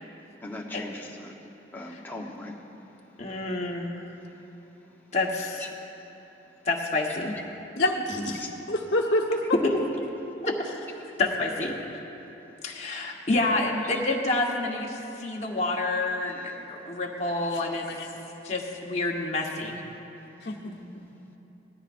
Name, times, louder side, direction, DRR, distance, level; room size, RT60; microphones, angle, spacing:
voice 1, 0.4-2.8 5.6-5.7 8.3-8.5 13.8-14.0 16.3-16.5 19.4-19.5, left 2 dB, 10° left, -1 dB, 0.9 m, -40 dB
voice 2, 3.2-3.9 5.1-5.7 6.6-7.3 9.6-9.7 10.4-10.5 11.2-11.8 12.6-17.9 18.4-19.8, left 2 dB, 35° left, -2 dB, 1.2 m, -28 dB
voice 3, 7.8-9.4 17.5-17.6 20.4-20.7, left 1 dB, 60° left, -2 dB, 1.1 m, -27 dB
18.0 x 14.0 x 2.6 m, 3.0 s
head